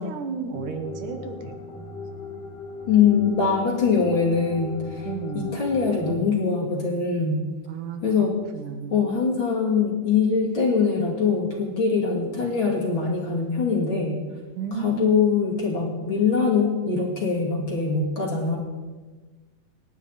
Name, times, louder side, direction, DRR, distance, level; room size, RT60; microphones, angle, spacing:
voice 1, 0.0-1.8 5.1-5.7 7.7-9.0 14.6-15.2, right 6 dB, 65° right, 6 dB, 2.4 m, -33 dB
sound 1, 0.5-6.2, left 4 dB, 65° left, 2.6 m, -38 dB
voice 2, 2.9-5.1 5.3-7.4 8.0-8.3 8.9-14.2 14.7-18.6, left 5 dB, 35° left, -2 dB, 2.9 m, -23 dB
27.0 x 11.0 x 4.2 m, 1.3 s
omnidirectional pair, 4.6 m